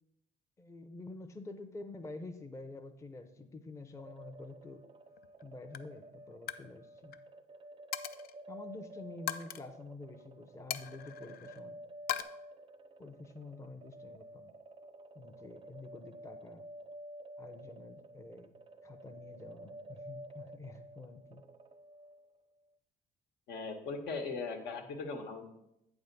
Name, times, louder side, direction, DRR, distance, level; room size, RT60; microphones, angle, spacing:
voice 1, 0.6-4.8 5.4-7.2 8.5-11.8 13.0-14.5 15.1-16.6 17.4-18.5 18.8-21.4, left 2 dB, 15° left, 6 dB, 0.6 m, -48 dB
sound 1, 4.0-22.4, right 1 dB, 30° right, 0.5 m, -51 dB
Coin (dropping), 5.2-5.4 5.7-6.0 6.3-6.7 6.9-7.2 7.9-8.4 9.3-9.6 10.7-11.6 12.1-12.2, left 11 dB, 60° left, 0.5 m, -39 dB
voice 2, 23.5-25.5, left 4 dB, 80° left, 4 dB, 1.2 m, -39 dB
8.3 x 3.5 x 6.6 m, 0.84 s
cardioid pair, 110°, 17 cm